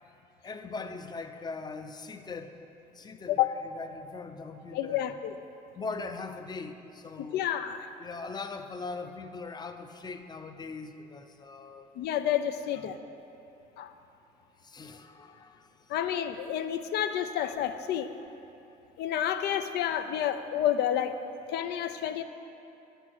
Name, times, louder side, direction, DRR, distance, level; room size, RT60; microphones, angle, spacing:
voice 1, 0.4-2.6 2.9-5.0 5.7-7.4 8.0-11.9 12.8-12.9 14.6-15.7, left 4 dB, 25° left, 8 dB, 0.6 m, -40 dB
voice 2, 4.7-5.4 7.2-7.9 12.0-13.0 13.8-13.9 15.9-18.1 19.0-21.2 21.5-22.2, left 10 dB, 75° left, 10 dB, 0.6 m, -29 dB
10.0 x 8.1 x 6.1 m, 2.9 s
cardioid pair, 110°, 17 cm